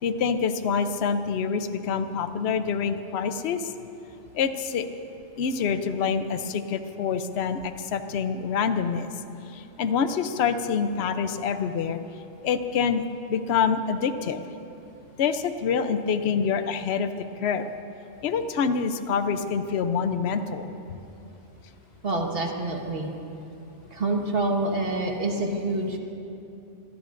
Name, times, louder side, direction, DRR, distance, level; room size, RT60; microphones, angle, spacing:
voice 1, 0.0-3.7 4.3-4.9 5.4-9.1 9.5-12.0 12.4-14.4 15.2-17.1 17.4-17.7 18.2-20.7, left 6 dB, 65° left, 9 dB, 0.9 m, -26 dB
voice 2, 22.0-23.1 23.9-26.0, right 2 dB, 55° right, 1 dB, 1.7 m, -27 dB
25.5 x 17.5 x 2.6 m, 2.8 s
omnidirectional pair, 1.2 m